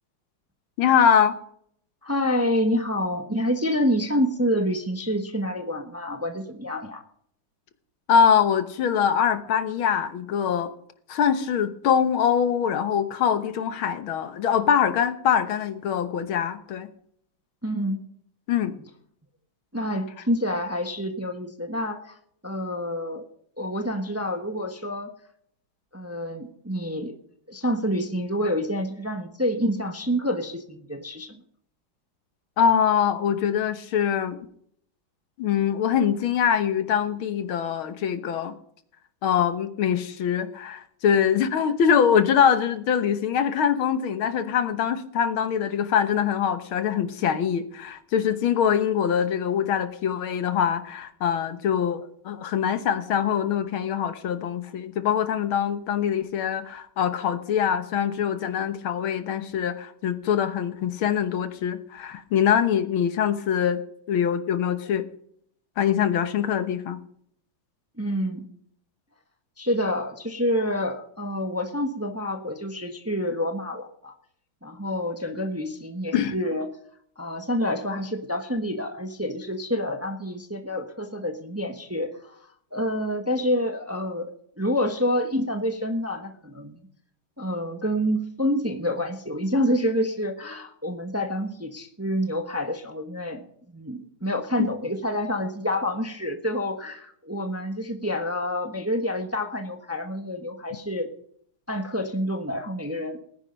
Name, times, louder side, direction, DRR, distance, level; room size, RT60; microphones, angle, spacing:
voice 1, 0.8-1.4 8.1-10.7 11.1-16.9 18.5-18.7 32.6-34.4 35.4-38.5 39.2-63.8 64.1-65.0 65.8-67.0 76.1-76.3 94.6-94.7, left 8 dB, 85° left, 10 dB, 2.0 m, -23 dB
voice 2, 2.0-7.0 17.6-18.0 19.7-22.1 22.4-23.2 23.6-25.1 25.9-27.1 27.5-31.4 68.0-68.5 69.6-74.1 74.6-76.7 77.2-82.4 82.7-86.8 87.4-101.1 101.7-103.2, equal, 10° right, 6 dB, 0.9 m, -28 dB
18.5 x 10.0 x 5.2 m, 0.66 s
omnidirectional pair, 2.2 m